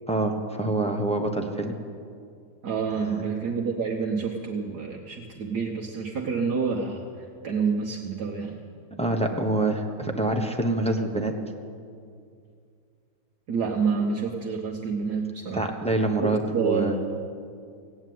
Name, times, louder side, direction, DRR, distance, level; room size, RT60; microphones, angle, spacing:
voice 1, 0.1-1.7 2.9-3.2 8.9-11.3 15.5-17.0, right 2 dB, 5° left, 2 dB, 0.8 m, -26 dB
voice 2, 2.6-8.6 13.5-15.7 16.2-17.0, right 5 dB, 65° right, 0 dB, 1.6 m, -28 dB
16.5 x 8.8 x 9.3 m, 2.3 s
omnidirectional pair, 1.9 m